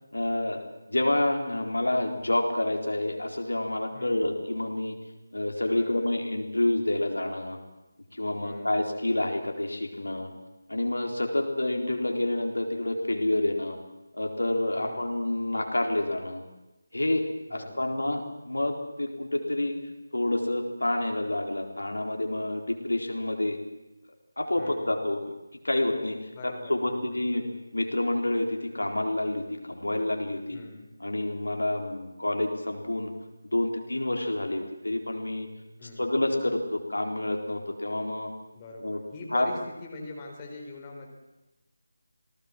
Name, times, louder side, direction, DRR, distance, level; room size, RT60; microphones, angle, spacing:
voice 1, 0.1-0.6 0.9-4.9 5.3-7.6 8.1-10.3 10.7-13.8 14.2-16.4 16.9-17.2 17.5-19.8 20.1-23.6 24.4-25.3 25.6-26.2 26.4-27.4 27.7-30.6 31.0-33.1 33.5-35.5 36.0-38.3 38.8-39.0 39.3-39.5, left 1 dB, 65° left, 3 dB, 4.1 m, -28 dB
voice 2, 3.9-4.3 5.7-6.1 8.4-8.8 14.8-15.1 17.5-17.9 24.6-25.0 26.3-27.6 30.5-30.9 35.8-36.1 38.5-41.1, left 2 dB, 15° left, 0 dB, 4.0 m, -43 dB
28.0 x 18.5 x 7.6 m, 1.0 s
figure-of-eight pair, 160°, 0 cm